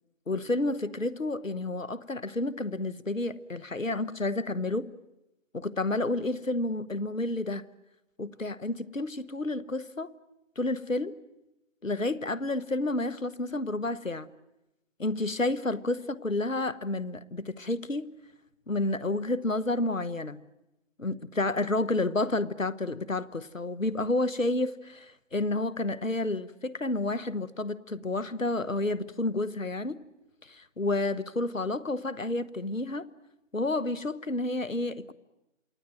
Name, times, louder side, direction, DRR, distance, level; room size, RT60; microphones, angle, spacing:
voice 1, 0.3-4.9 5.5-7.6 8.2-10.1 10.6-11.1 11.8-14.3 15.0-18.1 18.7-20.4 21.0-30.0 30.5-33.1 33.5-35.1, left 2 dB, 85° left, 1.4 m, -30 dB
28.0 x 20.5 x 9.2 m
figure-of-eight pair, 160°, 38 cm